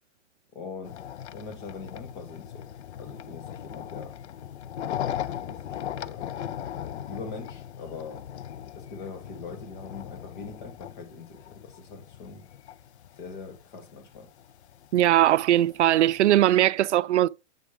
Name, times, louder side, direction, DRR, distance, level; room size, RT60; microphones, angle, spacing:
voice 1, 0.5-1.0 1.3-2.7 3.0-4.1 5.1-6.3 6.8-8.3 8.8-12.4 13.2-14.3, left 4 dB, 40° left, 2.0 m, -42 dB
sound 1, 0.8-16.6, left 10 dB, 65° left, 0.5 m, -39 dB
voice 2, 14.9-17.3, right 13 dB, 70° right, 0.5 m, -20 dB
8.0 x 3.3 x 4.9 m
hypercardioid pair, 160°, 36 cm